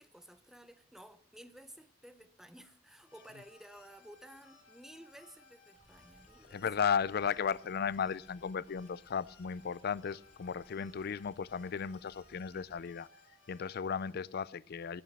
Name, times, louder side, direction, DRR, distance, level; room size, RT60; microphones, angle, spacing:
voice 1, 0.0-6.6, equal, ahead, 0.7 m, -54 dB
sound 1, 3.0-14.1, left 2 dB, 85° left, 3.6 m, -62 dB
Stream, 5.7-12.9, left 1 dB, 40° left, 2.3 m, -65 dB
voice 2, 6.5-13.1 13.5-15.0, left 6 dB, 55° left, 0.4 m, -35 dB
16.5 x 7.0 x 7.5 m
head